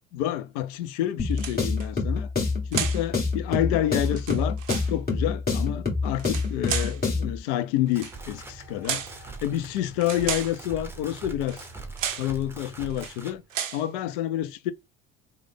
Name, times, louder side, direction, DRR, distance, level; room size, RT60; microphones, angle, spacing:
voice 1, 0.1-2.3 2.7-4.6 4.9-9.1 9.4-11.6 12.1-13.4 13.7-14.7, left 12 dB, 65° left, 0.5 m, -28 dB
sound 1, 1.2-7.4, left 4 dB, 25° left, 1.6 m, -27 dB
sound 2, 1.3-1.9 2.7-3.1 4.0-4.9 6.1-7.0 7.9-8.2 8.8-9.2 10.0-10.6 11.5-11.7 12.0-12.3 12.9-13.2 13.5-13.9, right 9 dB, 85° right, 0.5 m, -33 dB
sound 3, 7.7-13.4, right 3 dB, 5° right, 0.7 m, -42 dB
3.1 x 2.2 x 3.5 m
hypercardioid pair, 65°, 38 cm